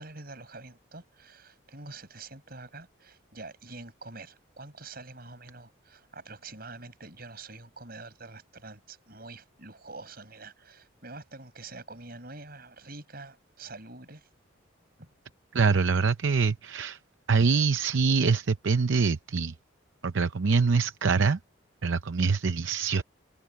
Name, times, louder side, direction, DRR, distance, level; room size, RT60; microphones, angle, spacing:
voice 1, 0.0-14.3 15.0-15.1, right 3 dB, 50° right, 7.6 m, -46 dB
voice 2, 15.5-17.0 17.3-19.5 20.0-21.4 21.8-23.0, right 5 dB, 70° right, 0.6 m, -24 dB
head